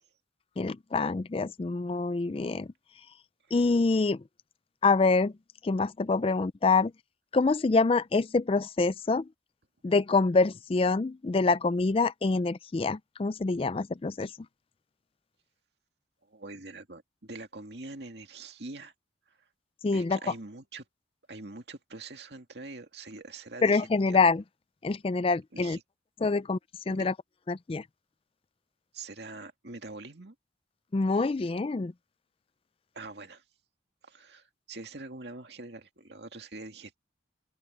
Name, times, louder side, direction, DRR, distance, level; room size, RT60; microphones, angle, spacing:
voice 1, 0.6-2.7 3.5-4.2 4.8-5.3 5.6-6.9 7.3-9.3 9.8-14.3 19.8-20.2 23.6-24.4 24.8-25.8 26.2-26.6 26.9-27.1 27.5-27.8 30.9-31.9, left 3 dB, 30° left, 0.4 m, -26 dB
voice 2, 16.2-18.9 19.3-19.4 19.9-20.8 21.3-24.3 25.5-25.8 26.9-27.1 28.9-30.3 32.9-33.4 34.0-37.0, right 3 dB, 60° right, 2.4 m, -44 dB
open air
head